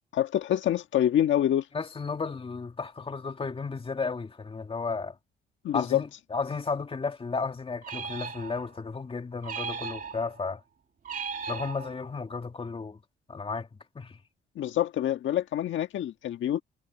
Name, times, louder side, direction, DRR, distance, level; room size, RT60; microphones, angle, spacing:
voice 1, 0.1-1.7 5.6-6.0 14.5-16.6, left 11 dB, 75° left, 1.6 m, -26 dB
voice 2, 1.7-5.2 5.7-10.6 11.5-13.0 13.3-13.7 14.0-14.2, left 4 dB, 25° left, 2.1 m, -33 dB
sound 1, 7.8-8.9 9.4-10.5 11.1-12.2, right 6 dB, 45° right, 2.5 m, -37 dB
cardioid pair, 90°, 20 cm